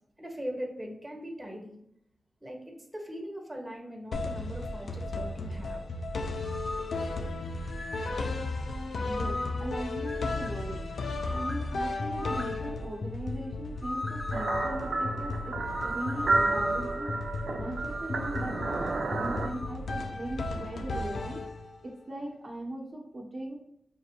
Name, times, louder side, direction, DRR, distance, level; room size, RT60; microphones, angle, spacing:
voice 1, 0.2-1.8 2.4-5.8, equal, 15° right, 0 dB, 1.2 m, -40 dB
sound 1, 4.1-21.9, left 2 dB, 80° left, 0.4 m, -35 dB
sound 2, 6.4-7.0 7.7-8.2 9.1-9.7 10.1-10.6 11.1-11.7 12.2-12.6 13.8-14.8 15.7-17.0 17.9-19.8, left 2 dB, 30° left, 0.5 m, -38 dB
voice 2, 9.0-10.9 11.3-17.2 17.5-21.4 21.8-23.6, right 1 dB, 45° right, -4 dB, 0.9 m, -39 dB
sound 3, 14.3-19.5, right 3 dB, 75° right, 0.4 m, -31 dB
5.1 x 2.5 x 2.8 m, 0.74 s
cardioid pair, 55°, 0 cm